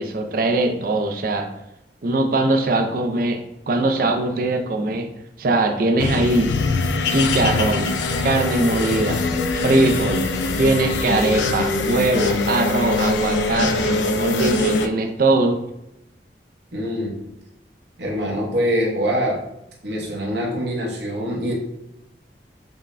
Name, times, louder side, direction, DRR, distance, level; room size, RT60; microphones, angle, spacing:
voice 1, 0.0-1.5 2.0-3.4 3.7-5.1 5.4-6.5 7.1-7.9 8.2-9.2 9.5-10.2 10.6-15.6, right 2 dB, 55° right, 5 dB, 0.4 m, -21 dB
sound 1, 6.0-14.9, left 3 dB, 80° left, 0.3 m, -23 dB
voice 2, 16.7-17.2 18.0-19.4 19.8-21.5, equal, 70° right, -2 dB, 0.8 m, -24 dB
5.4 x 2.1 x 2.5 m, 0.85 s
head